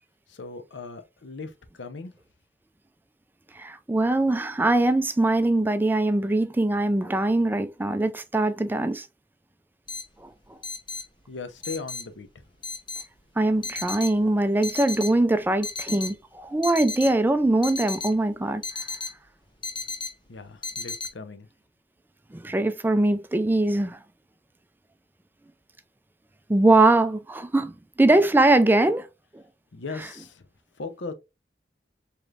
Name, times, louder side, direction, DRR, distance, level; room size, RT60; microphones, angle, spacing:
voice 1, 0.3-2.1 11.3-12.3 20.3-21.5 29.7-30.4 30.8-31.1, left 4 dB, 90° left, 0.7 m, -38 dB
voice 2, 3.6-9.1 10.2-10.6 13.4-18.6 22.3-24.0 26.5-29.1 29.3-29.4 30.0-30.1, right 2 dB, 10° right, 0.3 m, -22 dB
sound 1, 9.9-21.1, left 4 dB, 25° left, 0.9 m, -35 dB
4.9 x 3.1 x 2.4 m
head